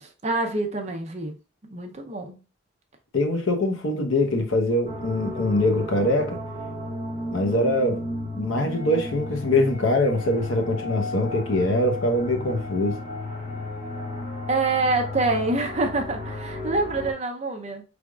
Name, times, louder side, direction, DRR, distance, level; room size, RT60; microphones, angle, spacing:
voice 1, 0.2-1.4 1.6-2.4 14.5-17.8, right 3 dB, 30° right, 0.7 m, -26 dB
voice 2, 3.1-6.4 7.3-8.0 8.4-13.0, left 1 dB, 75° left, 0.9 m, -23 dB
sound 1, 4.8-17.1, left 1 dB, 35° left, 1.1 m, -34 dB
4.9 x 3.4 x 2.3 m
head